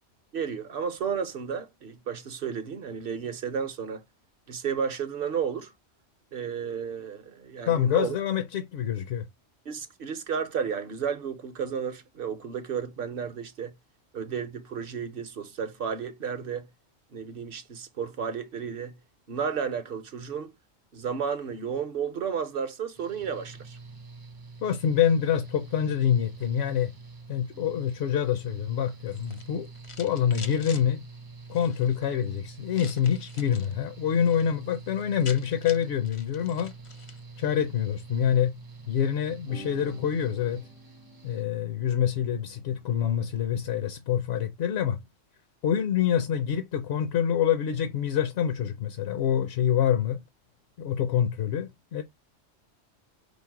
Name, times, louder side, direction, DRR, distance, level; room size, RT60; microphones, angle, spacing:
voice 1, 0.3-4.0 4.5-5.7 6.3-8.2 9.7-13.7 14.1-16.7 17.1-19.0 19.3-20.5 20.9-23.8 39.8-39.9, right 7 dB, 55° right, 0.8 m, -32 dB
voice 2, 7.7-9.3 24.6-26.9 27.3-29.7 30.0-31.0 31.5-36.7 37.4-38.5 38.9-40.6 41.2-45.0 45.6-50.2 50.8-52.0, left 9 dB, 65° left, 0.8 m, -26 dB
Mechanical fan, 23.0-41.4, right 4 dB, 25° right, 0.5 m, -46 dB
sound 1, 29.1-30.8 31.4-32.0 32.7-33.7 34.1-34.5 34.7-34.8 35.0-37.2, left 4 dB, 40° left, 0.4 m, -46 dB
sound 2, 36.3-36.4 36.8-37.0 37.7-38.1 39.5-43.8, equal, 85° left, 1.5 m, -49 dB
5.2 x 2.0 x 4.5 m
omnidirectional pair, 1.3 m